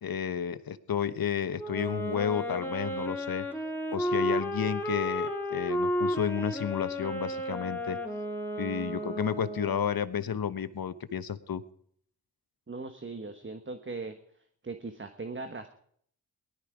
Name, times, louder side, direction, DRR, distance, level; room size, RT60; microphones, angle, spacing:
voice 1, 0.0-3.5 3.9-8.0 8.6-11.6, left 8 dB, 65° left, 13 dB, 1.0 m, -31 dB
Wind instrument woodwind instrument, 1.6-9.9, equal, 5° left, 3.0 m, -33 dB
voice 2, 12.7-14.2 14.6-15.7, right 3 dB, 30° right, 8 dB, 1.3 m, -39 dB
18.5 x 12.0 x 4.9 m, 0.64 s
cardioid pair, 55°, 39 cm